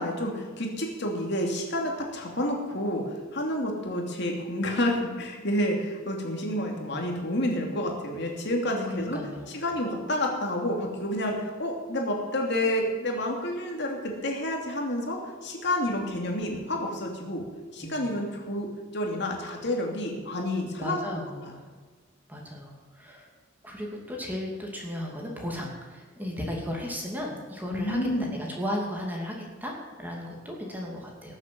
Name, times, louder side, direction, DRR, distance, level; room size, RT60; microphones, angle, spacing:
voice 1, 0.0-3.0 3.3-9.2 9.5-17.4 17.7-18.7 18.9-21.0 27.7-28.3, left 1 dB, 55° left, 1 dB, 2.8 m, -29 dB
voice 2, 8.8-9.5 17.8-18.2 20.8-21.7 22.3-23.3 23.6-31.4, equal, 10° right, -1 dB, 2.7 m, -35 dB
19.0 x 7.4 x 7.7 m, 1.4 s
head